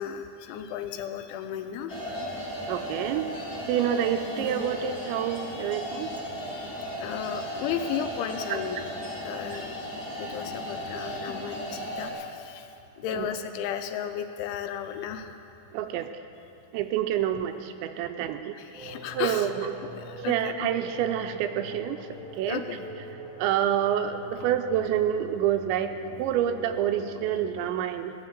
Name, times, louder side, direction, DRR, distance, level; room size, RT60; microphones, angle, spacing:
voice 1, 0.0-1.9 5.4-5.7 7.0-8.8 9.2-15.4 18.5-19.5 20.0-20.7 22.5-22.8, left 9 dB, 85° left, 7 dB, 3.1 m, -34 dB
sound 1, 1.9-12.1, equal, 30° left, 1.8 m, -35 dB
voice 2, 2.7-3.3 3.7-6.1 8.5-8.6 13.1-13.3 15.7-16.1 16.7-18.6 19.1-19.7 20.3-22.0 22.4-22.6 23.4-28.1, right 10 dB, 85° right, 8 dB, 2.8 m, -27 dB
sound 2, 18.7-27.7, right 1 dB, 35° right, 0.7 m, -43 dB
16.5 x 9.9 x 7.4 m, 2.8 s
omnidirectional pair, 5.5 m